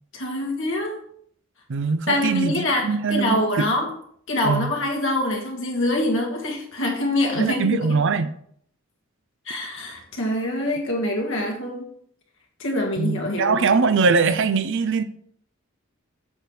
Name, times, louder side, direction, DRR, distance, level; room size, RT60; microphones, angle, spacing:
voice 1, 0.1-1.0 2.1-3.9 4.3-7.7 9.5-11.9 12.6-13.7, left 1 dB, 65° left, 0 dB, 1.8 m, -25 dB
voice 2, 1.7-3.7 4.4-4.7 7.4-8.3 13.0-15.0, right 4 dB, 65° right, 12 dB, 0.5 m, -22 dB
7.2 x 3.4 x 6.1 m, 0.64 s
head